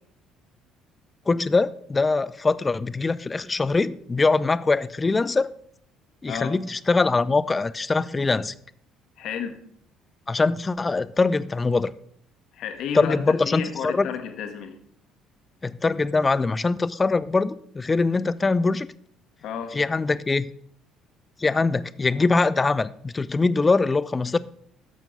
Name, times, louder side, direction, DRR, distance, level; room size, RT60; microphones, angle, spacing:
voice 1, 1.3-5.5 6.2-8.5 10.3-11.9 12.9-14.1 15.6-18.9 19.7-20.5 21.4-24.4, left 3 dB, 20° left, 0.4 m, -23 dB
voice 2, 6.3-6.6 9.2-9.6 12.5-13.2 13.4-14.8 19.4-19.8, left 7 dB, 55° left, 1.3 m, -32 dB
11.5 x 7.3 x 4.0 m
figure-of-eight pair, 50°, 0 cm